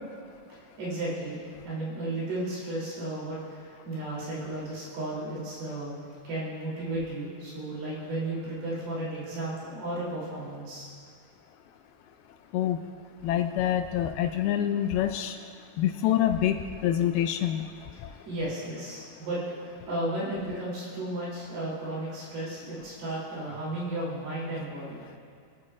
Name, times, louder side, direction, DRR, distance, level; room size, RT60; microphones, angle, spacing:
voice 1, 0.8-10.9 18.2-19.4 19.6-25.0, right 1 dB, 70° right, -7 dB, 4.9 m, -34 dB
voice 2, 13.2-15.4 15.8-16.6 16.8-17.6, left 11 dB, 80° left, 6 dB, 2.3 m, -26 dB
24.5 x 8.7 x 2.4 m, 2.3 s
omnidirectional pair, 4.6 m